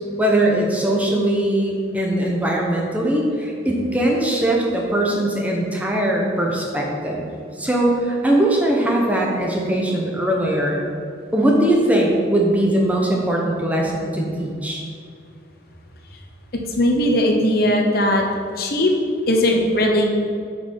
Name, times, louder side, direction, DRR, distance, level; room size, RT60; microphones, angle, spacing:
voice 1, 0.2-7.2 7.6-10.8 11.3-14.8, right 1 dB, 10° right, -2 dB, 1.0 m, -20 dB
voice 2, 16.8-18.2 18.6-18.9 19.3-20.0, left 1 dB, 55° left, 2 dB, 0.9 m, -18 dB
8.0 x 5.4 x 5.5 m, 2.3 s
head